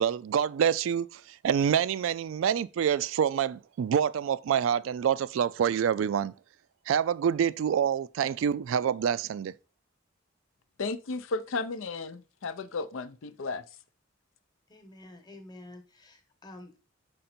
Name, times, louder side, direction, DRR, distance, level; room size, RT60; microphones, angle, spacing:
voice 1, 0.0-6.3 6.9-9.5, right 8 dB, 75° right, 0.3 m, -27 dB
voice 2, 10.8-13.6, left 3 dB, 80° left, 0.5 m, -34 dB
voice 3, 14.7-16.8, left 1 dB, 20° left, 1.1 m, -49 dB
5.2 x 5.1 x 4.3 m
head